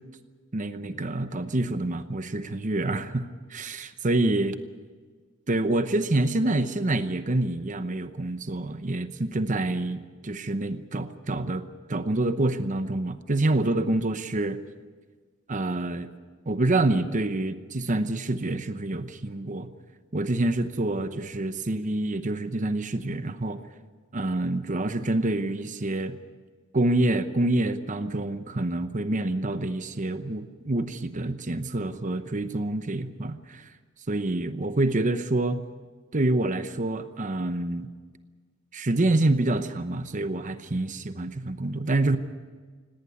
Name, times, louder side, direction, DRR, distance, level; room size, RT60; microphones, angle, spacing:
voice 1, 0.5-4.6 5.5-14.6 15.5-16.1 16.5-19.7 20.1-23.6 24.1-26.2 26.7-33.7 34.1-35.6 36.1-37.9 38.7-42.2, right 2 dB, 35° right, 10 dB, 0.9 m, -27 dB
18.5 x 18.5 x 9.5 m, 1.5 s
head